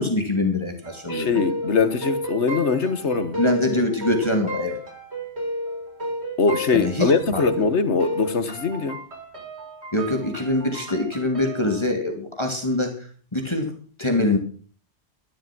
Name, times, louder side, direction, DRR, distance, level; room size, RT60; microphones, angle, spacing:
voice 1, 0.0-1.4 3.3-4.8 6.7-7.6 9.9-13.7 14.0-14.4, left 2 dB, 25° left, 2.7 m, -24 dB
sound 1, 0.8-11.8, equal, 70° right, 5.5 m, -32 dB
voice 2, 1.1-3.4 6.4-9.0, left 4 dB, 90° left, 1.7 m, -22 dB
13.5 x 12.5 x 6.1 m
omnidirectional pair, 1.2 m